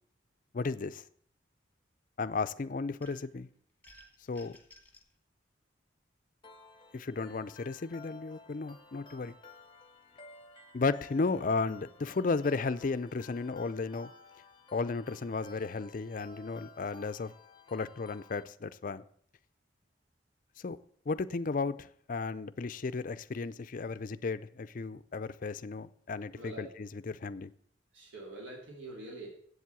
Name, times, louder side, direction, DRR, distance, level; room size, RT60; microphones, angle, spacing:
voice 1, 0.5-1.0 2.2-3.5 4.3-4.6 6.9-9.4 10.7-14.1 14.7-17.3 17.7-19.0 20.6-20.8 21.1-27.5, left 4 dB, 45° left, 0.4 m, -34 dB
sound 1, 3.0-3.4 3.8-5.1, equal, 10° left, 1.3 m, -57 dB
sound 2, 6.4-18.4, left 3 dB, 25° left, 0.8 m, -54 dB
voice 2, 26.3-26.7 27.9-29.3, right 2 dB, 80° right, 2.8 m, -45 dB
8.0 x 7.5 x 8.1 m
head